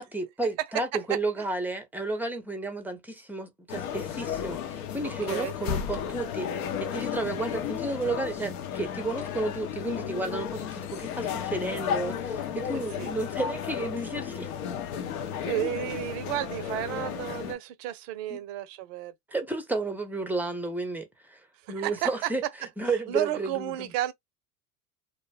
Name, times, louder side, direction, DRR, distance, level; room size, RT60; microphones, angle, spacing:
voice 1, 0.0-14.5 18.3-18.4 19.3-21.4 21.7-22.4 22.8-23.9, right 3 dB, 5° right, 0.6 m, -32 dB
voice 2, 0.7-1.2 5.3-5.5 13.0-13.1 15.4-19.1 21.6-22.3 22.8-24.1, right 14 dB, 50° right, 0.6 m, -32 dB
sound 1, 3.7-17.6, left 8 dB, 60° left, 0.8 m, -33 dB
2.5 x 2.1 x 3.2 m
hypercardioid pair, 85°, 49 cm